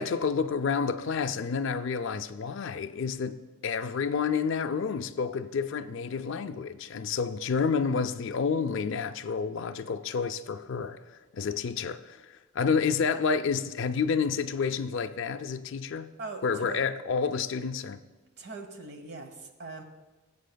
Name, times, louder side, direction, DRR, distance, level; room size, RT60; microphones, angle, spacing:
voice 1, 0.0-11.0 11.3-12.2 12.5-16.1 16.4-18.0, left 5 dB, 55° left, 0.4 m, -29 dB
voice 2, 16.2-16.8 18.4-19.8, right 3 dB, 50° right, 1.0 m, -41 dB
16.5 x 8.3 x 2.3 m
head